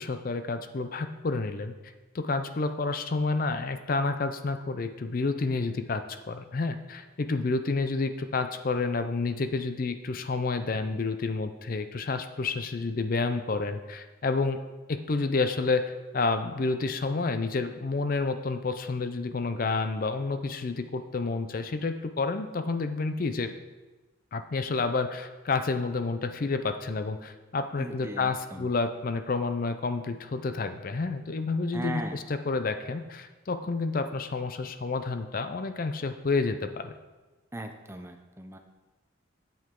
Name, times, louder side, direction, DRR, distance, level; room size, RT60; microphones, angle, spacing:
voice 1, 0.0-1.7 2.1-14.6 14.9-23.5 24.3-36.9, left 3 dB, 45° left, 9 dB, 0.5 m, -29 dB
voice 2, 27.8-28.7 31.7-32.2 37.5-38.6, right 1 dB, 10° right, 5 dB, 0.6 m, -38 dB
10.0 x 7.9 x 3.7 m, 1.2 s
head